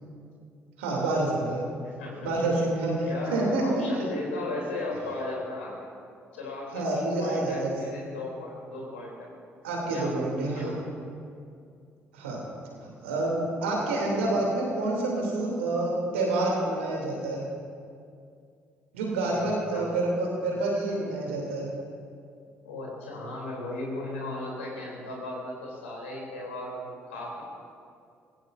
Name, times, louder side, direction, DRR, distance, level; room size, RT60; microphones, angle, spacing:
voice 1, 0.8-1.6 2.2-3.8 6.7-7.7 9.6-10.7 12.1-12.4 12.8-17.4 18.9-21.7, right 2 dB, 85° right, -2 dB, 3.0 m, -28 dB
voice 2, 1.8-2.5 3.0-5.8 6.3-9.3 9.8-10.8 19.3-19.9 22.6-27.4, left 2 dB, 85° left, -3 dB, 3.3 m, -36 dB
23.5 x 16.5 x 2.7 m, 2.4 s
hypercardioid pair, 45°, 7 cm